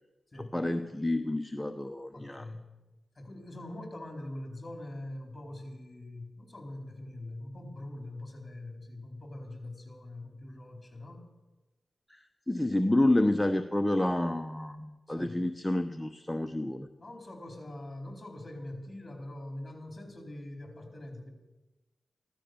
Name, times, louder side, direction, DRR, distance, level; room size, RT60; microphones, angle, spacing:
voice 1, 0.5-2.4 12.1-16.9, left 1 dB, 10° left, 7 dB, 0.9 m, -29 dB
voice 2, 2.1-2.7 3.1-11.2 15.1-15.4 17.0-21.3, left 1 dB, 30° left, 3 dB, 4.5 m, -43 dB
15.5 x 13.5 x 7.0 m, 1.1 s
cardioid pair, 60°, 0 cm